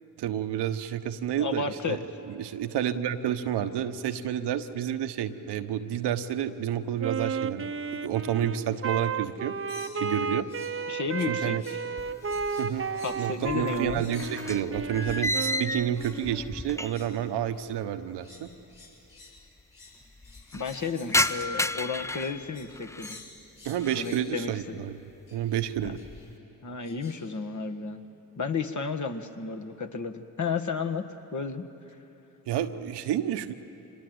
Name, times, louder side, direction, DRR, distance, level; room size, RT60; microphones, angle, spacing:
voice 1, 0.2-2.0 2.3-9.5 9.9-10.5 11.3-11.6 12.6-12.9 13.1-18.5 23.6-24.9 25.3-26.0 32.5-33.5, right 10 dB, 70° right, 9 dB, 1.1 m, -30 dB
voice 2, 1.4-2.0 10.9-11.8 13.0-14.0 20.5-23.2 24.0-24.8 25.8-25.9 26.6-28.0 28.4-31.0 31.3-31.6, left 5 dB, 45° left, 5 dB, 1.7 m, -32 dB
Wind instrument woodwind instrument, 7.0-16.0, right 5 dB, 30° right, 0.9 m, -33 dB
sound 1, 9.7-10.8 11.1-11.9 12.2-15.5 15.9-16.2 16.8-17.2 17.8-22.8 23.0-24.3 25.3-25.6 26.0-26.3 26.8-27.3, left 3 dB, 75° left, 6.3 m, -51 dB
sound 2, 12.0-12.9 13.1-17.2 17.5-17.6 18.5-18.6 18.7-18.8 19.1-19.6 20.0-23.2 23.7-24.2 24.6-25.0 25.4-26.3, left 1 dB, 5° left, 0.5 m, -33 dB
25.5 x 20.5 x 7.9 m, 3.0 s
hypercardioid pair, 45°, 42 cm